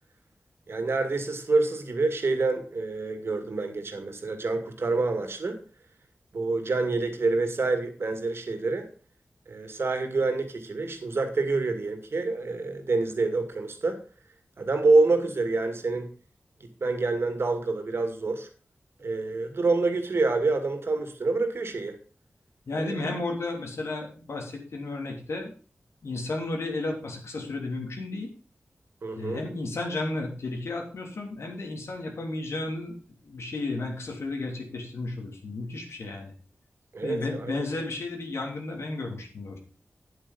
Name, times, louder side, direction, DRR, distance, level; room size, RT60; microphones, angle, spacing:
voice 1, 0.7-5.6 6.3-8.9 9.5-14.0 14.6-16.1 16.6-18.5 19.0-22.0 22.8-22.9 29.0-29.4 36.9-37.7, right 3 dB, 65° right, 7 dB, 2.3 m, -27 dB
voice 2, 22.7-25.5 26.0-28.3 29.1-32.9 33.2-36.3 37.0-39.6, left 2 dB, 90° left, 1 dB, 3.3 m, -33 dB
9.7 x 8.8 x 5.4 m, 0.39 s
wide cardioid pair, 105°, 4 cm